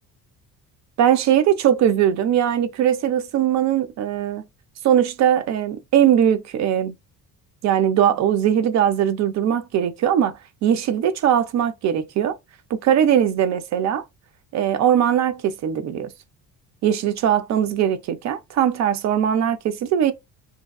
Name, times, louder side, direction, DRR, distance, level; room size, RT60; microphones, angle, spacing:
voice 1, 1.0-4.4 4.8-6.9 7.6-12.4 12.8-14.0 14.5-16.1 16.8-20.1, right 9 dB, 40° right, 0.4 m, -20 dB
2.6 x 2.2 x 2.3 m
hypercardioid pair, 50°, 49 cm